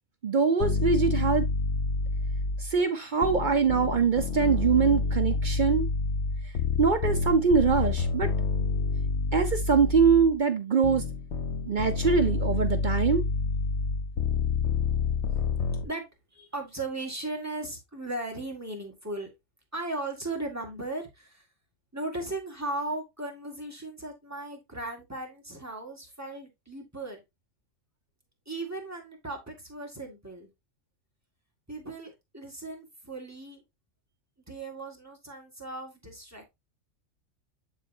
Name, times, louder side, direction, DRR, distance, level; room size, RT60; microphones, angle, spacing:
voice 1, 0.2-1.5 2.6-5.9 6.8-8.3 9.3-11.0 11.7-13.2, right 5 dB, 50° right, 0.6 m, -23 dB
sound 1, 0.6-2.8 3.2-10.3 10.8-15.8, left 4 dB, 55° left, 1.1 m, -28 dB
voice 2, 16.3-19.3 19.7-21.5 21.9-27.2 28.5-30.5 31.7-33.6 34.5-36.5, right 2 dB, 10° right, 1.8 m, -37 dB
11.0 x 3.9 x 2.7 m
omnidirectional pair, 1.4 m